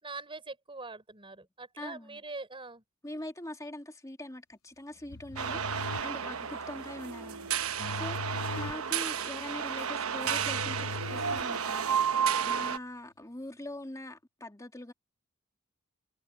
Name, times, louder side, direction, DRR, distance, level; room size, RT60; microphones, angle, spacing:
voice 1, 0.0-2.8, right 3 dB, 25° right, 4.7 m, -43 dB
voice 2, 1.8-2.2 3.0-8.2 8.6-14.9, left 1 dB, 15° left, 2.6 m, -43 dB
sound 1, 5.0-12.0, left 4 dB, 85° left, 0.9 m, -42 dB
sound 2, 5.4-12.8, right 7 dB, 90° right, 1.1 m, -32 dB
head